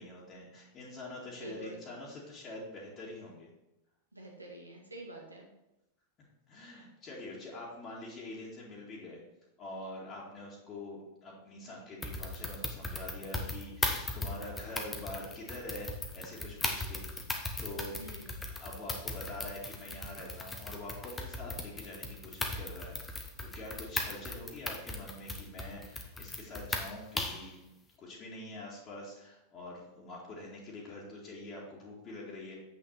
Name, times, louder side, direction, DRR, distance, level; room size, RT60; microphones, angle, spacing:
voice 1, 0.0-3.5 6.5-9.2 9.6-17.3 17.6-17.9 18.5-23.2 23.5-27.6 28.0-32.6, left 1 dB, 30° left, -4 dB, 2.1 m, -45 dB
voice 2, 1.4-1.8 4.1-5.5 18.0-18.4, right 2 dB, 85° right, -1 dB, 1.8 m, -47 dB
sound 1, 12.0-27.5, left 2 dB, 15° left, 1.0 m, -38 dB
7.9 x 6.0 x 4.2 m, 0.91 s
figure-of-eight pair, 90°, 0 cm